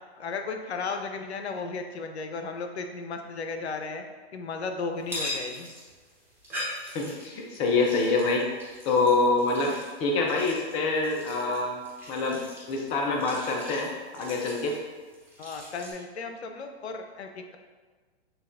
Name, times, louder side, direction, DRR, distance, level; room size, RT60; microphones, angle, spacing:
voice 1, 0.2-4.0 4.3-5.7 15.4-17.6, left 4 dB, 90° left, 5 dB, 0.6 m, -35 dB
sound 1, 5.0-15.9, left 1 dB, 5° right, 1.2 m, -41 dB
voice 2, 6.9-8.5 8.9-11.8 12.1-12.4 12.7-14.8, left 3 dB, 20° left, 1 dB, 0.4 m, -26 dB
6.5 x 2.3 x 2.5 m, 1.4 s
hypercardioid pair, 125°, 32 cm